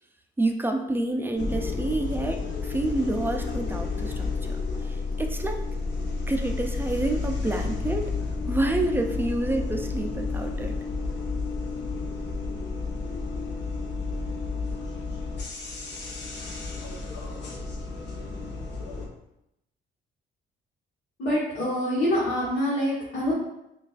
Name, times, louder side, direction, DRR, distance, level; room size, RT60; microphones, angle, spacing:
voice 1, 0.4-4.6 4.9-5.6 6.3-8.1 8.5-10.7, right 2 dB, 10° right, 4 dB, 0.4 m, -28 dB
sound 1, 1.4-19.1, left 4 dB, 60° left, 0.9 m, -31 dB
voice 2, 21.2-23.3, equal, 75° left, -8 dB, 1.3 m, -25 dB
5.4 x 2.4 x 2.4 m, 0.85 s
cardioid pair, 90°, 20 cm